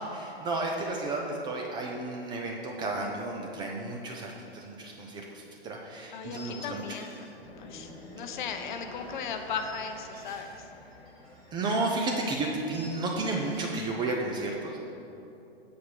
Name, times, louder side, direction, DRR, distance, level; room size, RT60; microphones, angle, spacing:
voice 1, 0.1-6.8 11.5-14.8, right 2 dB, 15° right, 0 dB, 0.4 m, -32 dB
sound 1, 4.4-4.7 5.0-5.2 6.3-7.3 7.6-8.4 9.3-10.6 10.9-11.5 11.8-11.9 12.7-13.9, equal, 30° right, 1.2 m, -52 dB
voice 2, 6.1-7.1 7.6-10.6, left 6 dB, 50° left, 7 dB, 0.7 m, -37 dB
sound 2, 7.3-12.4, left 2 dB, 15° left, 0.8 m, -49 dB
6.5 x 4.6 x 6.2 m, 2.9 s
figure-of-eight pair, 110°, 32 cm